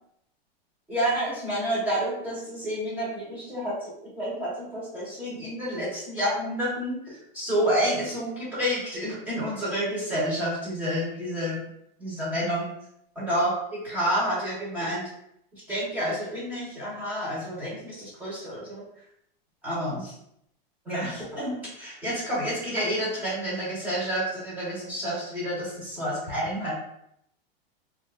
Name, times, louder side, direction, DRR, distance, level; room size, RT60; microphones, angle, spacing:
voice 1, 0.9-3.9 4.2-11.6 12.0-12.7 13.2-13.5 13.8-15.1 15.7-18.8 19.6-20.1 20.9-26.7, equal, 5° right, -8 dB, 0.8 m, -29 dB
2.5 x 2.5 x 3.3 m, 0.75 s
supercardioid pair, 170°, 30 cm